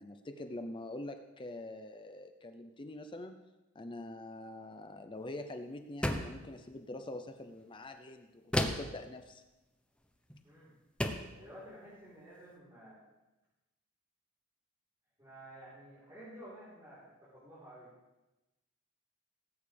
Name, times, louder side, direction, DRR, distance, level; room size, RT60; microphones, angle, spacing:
voice 1, 0.0-3.4 3.7-9.4, left 1 dB, 25° left, 7 dB, 0.5 m, -45 dB
sound 1, 6.0-6.4 8.5-9.0 10.3-10.4 11.0-11.3, left 1 dB, 5° left, 0.9 m, -32 dB
voice 2, 11.3-13.0 15.2-17.9, right 1 dB, 20° right, -11 dB, 4.0 m, -52 dB
18.5 x 8.9 x 3.4 m, 1.0 s
head